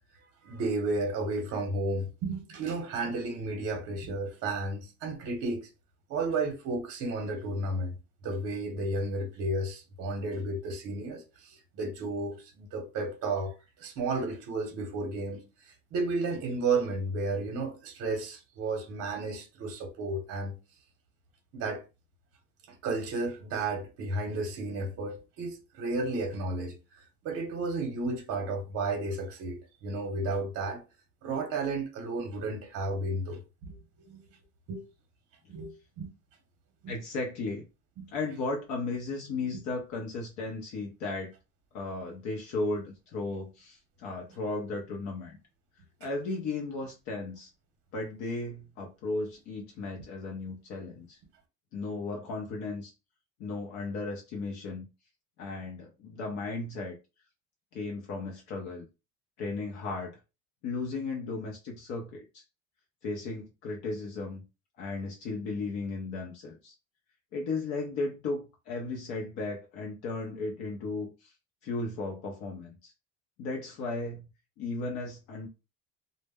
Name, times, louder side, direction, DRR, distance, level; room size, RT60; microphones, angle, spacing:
voice 1, 0.4-5.7 6.1-8.0 8.2-13.5 13.8-20.6 21.5-21.8 22.8-26.8 27.2-30.8 31.2-33.8 34.1-34.2 34.7-34.8 35.5-36.1 36.8-36.9 38.0-38.1, right 2 dB, 50° right, 0.7 m, -33 dB
voice 2, 36.9-37.6 38.1-41.3 41.7-45.4 46.0-47.5 47.9-51.2 51.7-52.9 53.4-54.8 55.4-56.9 57.7-58.9 59.4-60.2 60.6-62.4 63.0-64.4 64.8-66.7 67.3-71.3 71.6-72.9 73.4-74.3 74.6-75.5, left 3 dB, 65° left, 0.6 m, -35 dB
2.1 x 2.0 x 3.3 m
cardioid pair, 170°, 30 cm